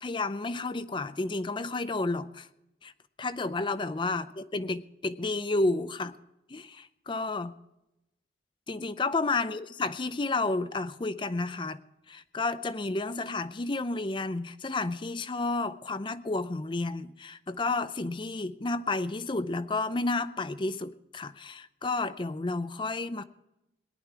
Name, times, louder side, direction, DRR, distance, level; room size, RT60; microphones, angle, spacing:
voice 1, 0.0-2.5 2.8-2.9 3.2-6.1 6.5-7.5 8.7-11.8 12.1-23.2, left 3 dB, 25° left, 13 dB, 0.5 m, -31 dB
18.5 x 11.0 x 4.8 m, 0.87 s
head